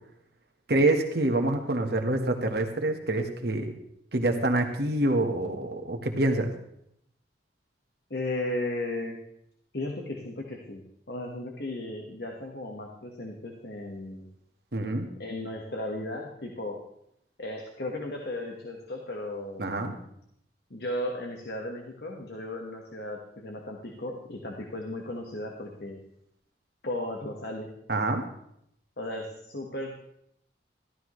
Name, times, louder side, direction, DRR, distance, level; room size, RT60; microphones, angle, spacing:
voice 1, 0.7-3.7 4.1-6.5 14.7-15.1 19.6-20.0 27.9-28.2, right 2 dB, 60° right, 4 dB, 1.4 m, -26 dB
voice 2, 8.1-9.2 9.7-14.3 15.2-16.8 17.4-19.9 20.7-26.0 26.8-27.7 29.0-30.0, left 1 dB, 60° left, 0 dB, 1.5 m, -35 dB
14.0 x 12.5 x 3.2 m, 0.75 s
head